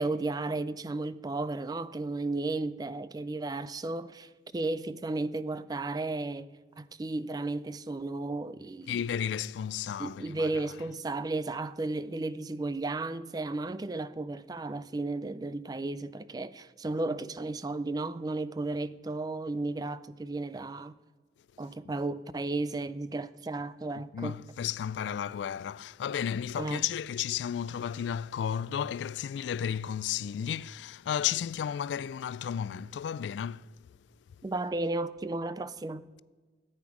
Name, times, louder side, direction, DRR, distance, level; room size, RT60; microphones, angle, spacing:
voice 1, 0.0-6.5 6.8-9.0 10.0-21.0 21.6-24.4 26.6-26.9 34.4-36.1, right 2 dB, 20° right, 0.3 m, -34 dB
voice 2, 8.9-10.5 24.1-33.7, left 9 dB, 80° left, 0.3 m, -33 dB
14.0 x 8.9 x 4.8 m
head